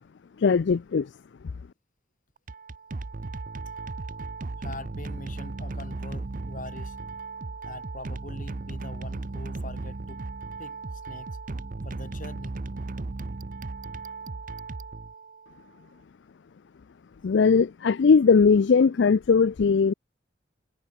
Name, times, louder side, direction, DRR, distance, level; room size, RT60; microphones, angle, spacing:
voice 1, 0.4-1.1 17.2-19.9, left 5 dB, 65° left, 0.4 m, -19 dB
sound 1, 2.4-15.6, right 3 dB, 45° right, 0.7 m, -36 dB
voice 2, 4.6-7.0 7.6-10.2 10.6-10.8 11.1-11.4 11.8-12.6, left 2 dB, 45° left, 5.9 m, -43 dB
head